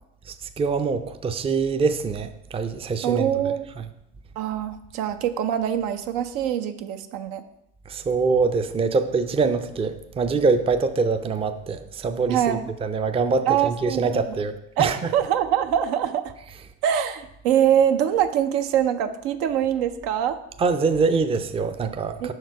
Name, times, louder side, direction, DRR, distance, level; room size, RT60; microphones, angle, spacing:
voice 1, 0.6-3.2 7.9-14.5 14.8-15.0 20.6-22.3, right 4 dB, 15° right, 9 dB, 0.4 m, -24 dB
voice 2, 3.0-3.7 4.4-7.4 12.3-12.7 13.5-14.3 14.8-16.2 16.8-20.4 22.2-22.3, right 9 dB, 75° right, 8 dB, 0.6 m, -23 dB
5.7 x 4.6 x 4.6 m, 0.83 s
supercardioid pair, 80°, 34 cm